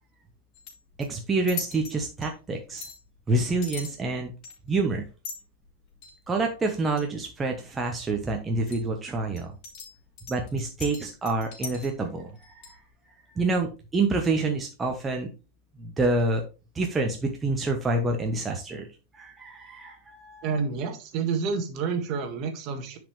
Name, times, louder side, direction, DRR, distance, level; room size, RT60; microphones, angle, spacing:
sound 1, 0.5-1.1 1.5-2.0 2.2-2.3 2.8-3.0 3.6-4.0 4.4-4.7 5.2-5.4 6.0-6.2 6.7-7.0 8.7-8.9 9.4-12.0 12.3-12.7, left 6 dB, 45° left, 3.8 m, -39 dB
voice 1, 1.0-2.8 3.3-4.3 4.7-5.0 6.3-9.5 10.3-12.6 13.3-15.3 15.8-16.4 16.7-18.9 19.1-20.5, right 2 dB, 15° right, 2 dB, 1.2 m, -27 dB
voice 2, 20.4-23.0, right 5 dB, 40° right, 6 dB, 1.7 m, -29 dB
10.5 x 5.2 x 3.3 m, 0.31 s
figure-of-eight pair, 90°, 0 cm